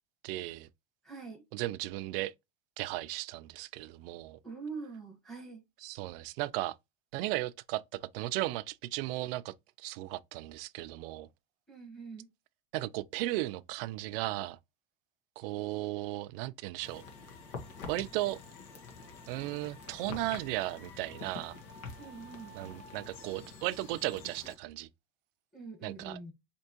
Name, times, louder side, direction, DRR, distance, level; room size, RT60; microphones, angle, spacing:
voice 1, 0.2-0.7 1.5-2.3 2.8-4.4 5.8-6.8 7.1-11.3 12.7-14.6 15.4-17.0 17.9-18.4 19.3-21.6 22.5-24.9 25.8-26.2, right 17 dB, 70° right, 0.5 m, -36 dB
voice 2, 1.0-1.4 4.4-5.6 11.7-12.3 22.0-22.5 25.5-26.3, right 4 dB, ahead, 1.5 m, -44 dB
sound 1, 16.8-24.6, left 4 dB, 65° left, 1.3 m, -47 dB
4.4 x 2.9 x 2.8 m
supercardioid pair, 145°, 30 cm